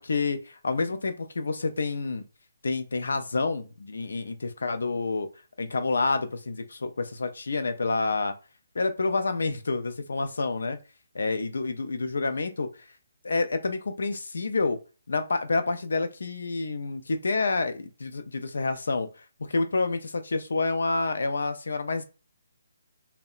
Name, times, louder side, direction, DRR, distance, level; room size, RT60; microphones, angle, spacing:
voice 1, 0.0-2.2 2.6-5.3 5.6-8.3 8.7-10.8 11.1-12.7 13.2-14.8 15.1-19.1 19.5-22.0, left 3 dB, 75° left, 0.4 m, -28 dB
2.7 x 2.1 x 2.3 m
hypercardioid pair, 155°, 0 cm